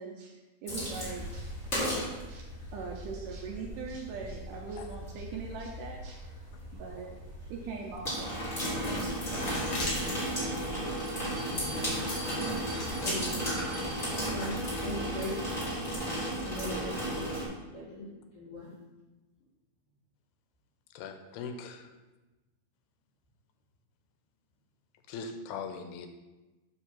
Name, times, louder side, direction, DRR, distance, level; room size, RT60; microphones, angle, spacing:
voice 1, 0.0-6.5 6.7-8.6, right 4 dB, 80° right, 1 dB, 2.0 m, -42 dB
sound 1, 0.7-17.5, equal, 25° left, 1.6 m, -35 dB
sound 2, 9.0-14.6, left 1 dB, 50° left, 2.8 m, -39 dB
Bell, 11.0-15.5, right 2 dB, 50° right, 1.7 m, -48 dB
voice 2, 11.4-12.4 13.0-13.4 14.3-15.4 16.4-17.4 17.7-18.7 21.8-21.9, left 1 dB, 70° left, -6 dB, 4.5 m, -40 dB
voice 3, 20.9-21.8 25.1-26.1, left 5 dB, 85° left, 6 dB, 2.5 m, -40 dB
7.7 x 3.5 x 5.8 m, 1.1 s
omnidirectional pair, 4.2 m